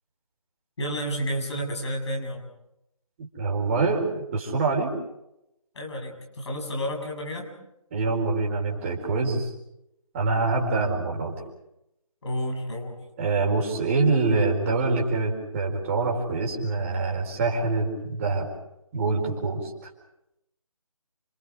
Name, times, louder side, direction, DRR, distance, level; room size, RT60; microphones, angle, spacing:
voice 1, 0.8-2.5 5.7-7.5 12.2-13.0, equal, 50° left, 2 dB, 7.6 m, -31 dB
voice 2, 3.2-4.9 7.9-9.5 10.1-11.3 13.2-18.5 18.9-19.7, right 3 dB, 20° right, -1 dB, 4.5 m, -25 dB
30.0 x 26.0 x 4.9 m, 0.85 s
figure-of-eight pair, 160°, 18 cm